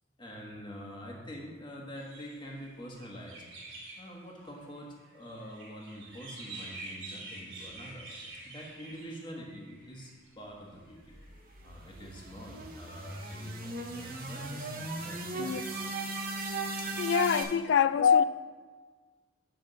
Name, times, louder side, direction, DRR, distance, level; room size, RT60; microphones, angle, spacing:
voice 1, 0.2-3.4 4.0-8.1 8.4-11.0 11.6-15.6, equal, 25° left, -2 dB, 1.3 m, -45 dB
sound 1, 1.9-10.3 11.0-11.6 12.1-14.5, right 2 dB, 65° right, 2.4 m, -48 dB
sound 2, 11.0-17.4, right 3 dB, 45° right, 0.9 m, -37 dB
voice 2, 17.0-18.2, left 7 dB, 65° left, 15 dB, 0.3 m, -24 dB
9.1 x 3.4 x 6.6 m, 1.5 s
head